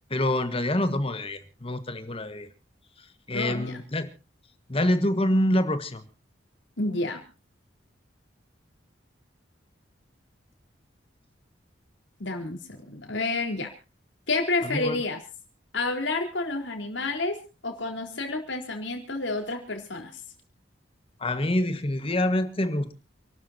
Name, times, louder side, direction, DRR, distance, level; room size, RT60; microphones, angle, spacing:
voice 1, 0.1-2.5 3.3-4.1 4.7-6.0 14.6-15.0 21.2-22.9, left 1 dB, 30° left, 10 dB, 1.6 m, -26 dB
voice 2, 3.3-3.8 6.8-7.2 12.2-13.7 14.3-15.2 15.7-17.4 17.6-20.2, left 2 dB, 75° left, 3 dB, 4.2 m, -29 dB
29.0 x 13.0 x 2.9 m, 0.34 s
head